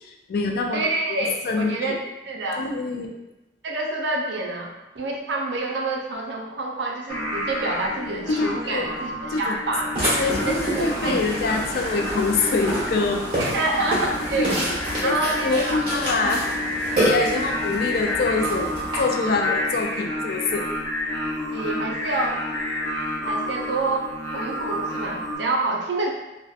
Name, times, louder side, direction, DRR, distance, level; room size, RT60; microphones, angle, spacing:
voice 1, 0.0-0.8 1.1-2.0 2.6-3.1 8.3-8.9 9.3-9.5 10.2-13.3 14.3-14.5 15.0-16.4 17.0-20.7, left 3 dB, 55° left, 2 dB, 0.3 m, -25 dB
voice 2, 0.7-2.7 3.6-9.9 10.5-11.2 13.4-14.6 15.0-15.8 16.2-16.3 17.3-17.5 21.5-22.4 23.2-26.1, right 2 dB, 75° right, 0 dB, 0.4 m, -27 dB
Singing, 7.1-25.4, left 1 dB, 20° left, 0.9 m, -30 dB
Burping eructation, 10.0-19.0, right 1 dB, 30° right, 0.9 m, -28 dB
2.6 x 2.1 x 2.3 m, 0.99 s
head